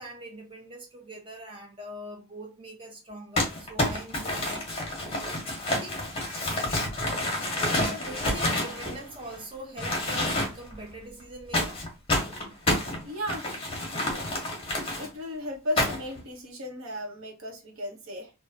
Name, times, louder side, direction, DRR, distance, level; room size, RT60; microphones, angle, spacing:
voice 1, 0.0-4.7 5.6-6.1 7.6-11.8, right 1 dB, 25° right, 0.9 m, -42 dB
Crumpling crinkling, 3.4-9.4 9.8-10.7 11.5-15.1 15.8-16.2, left 1 dB, 25° left, 1.1 m, -29 dB
voice 2, 13.0-13.5 14.1-14.3 15.0-18.3, left 1 dB, 70° right, 0.9 m, -35 dB
3.1 x 2.2 x 2.6 m
head